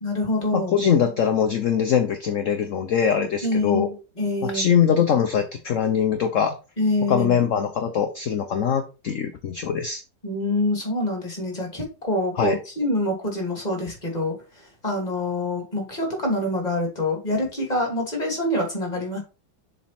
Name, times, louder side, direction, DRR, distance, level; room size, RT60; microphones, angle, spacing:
voice 1, 0.0-0.7 3.4-3.9 4.2-4.8 6.8-7.4 10.2-14.3 14.8-19.2, left 1 dB, 20° left, 1 dB, 2.6 m, -25 dB
voice 2, 0.5-3.9 4.4-6.6 7.1-10.0 12.4-12.6, left 7 dB, 60° left, 7 dB, 0.8 m, -22 dB
7.2 x 4.1 x 4.3 m, 0.31 s
omnidirectional pair, 2.1 m